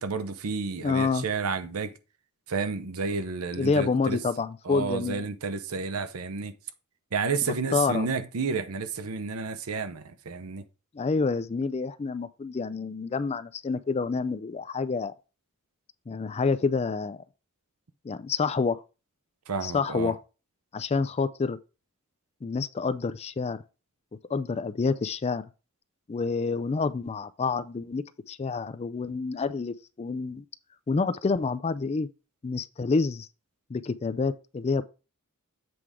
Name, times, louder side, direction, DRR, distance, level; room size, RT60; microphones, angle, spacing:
voice 1, 0.0-1.9 2.5-4.2 4.7-6.5 7.1-10.6 19.5-20.1, right 4 dB, 80° right, 0.7 m, -31 dB
voice 2, 0.8-1.3 3.6-5.3 7.7-8.1 10.9-15.1 16.1-17.2 18.0-18.8 19.6-20.2 20.7-21.6 22.4-23.6 24.3-25.4 26.1-30.4 30.9-32.1 32.4-33.3 33.7-34.8, left 4 dB, 30° left, 0.4 m, -28 dB
7.8 x 3.6 x 4.8 m
head